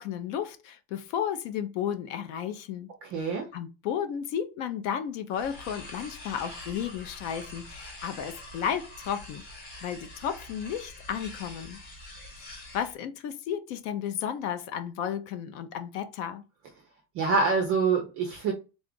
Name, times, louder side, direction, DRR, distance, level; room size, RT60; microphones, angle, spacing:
voice 1, 0.0-2.9 3.2-9.4 9.8-11.8 12.4-16.4, left 9 dB, 50° left, 0.5 m, -33 dB
voice 2, 3.0-3.4 17.1-18.5, right 4 dB, 30° right, 0.4 m, -25 dB
sound 1, 5.3-13.0, left 2 dB, 20° left, 1.0 m, -45 dB
3.7 x 2.3 x 3.7 m
cardioid pair, 170°, 49 cm